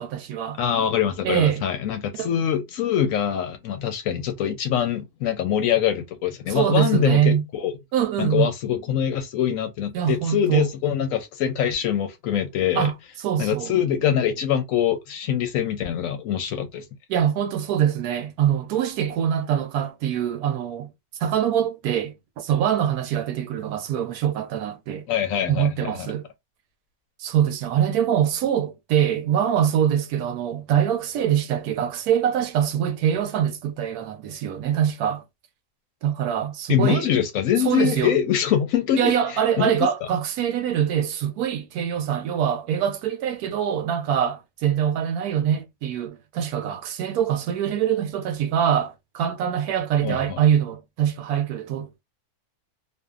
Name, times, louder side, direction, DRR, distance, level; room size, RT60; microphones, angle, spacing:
voice 1, 0.0-0.6 1.2-1.6 2.2-2.3 6.5-7.4 7.9-8.5 9.9-10.7 12.8-12.9 13.2-13.7 17.1-20.9 21.2-25.1 25.5-26.3 27.2-35.2 36.0-37.1 37.6-38.1 39.0-52.0, right 9 dB, 80° right, 1.1 m, -24 dB
voice 2, 0.6-7.7 8.2-12.9 13.4-16.8 25.1-26.1 36.7-39.7 50.0-50.4, left 9 dB, 70° left, 0.9 m, -24 dB
2.6 x 2.5 x 2.3 m
omnidirectional pair, 1.6 m